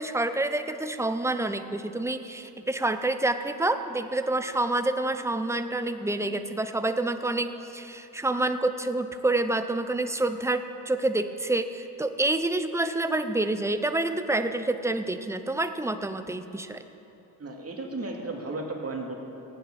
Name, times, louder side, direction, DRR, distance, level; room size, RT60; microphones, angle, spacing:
voice 1, 0.0-16.8, right 2 dB, 5° right, 9 dB, 0.7 m, -28 dB
voice 2, 17.4-19.1, right 2 dB, 35° right, 0 dB, 2.4 m, -34 dB
15.5 x 9.4 x 6.1 m, 2.9 s
cardioid pair, 75°, 43 cm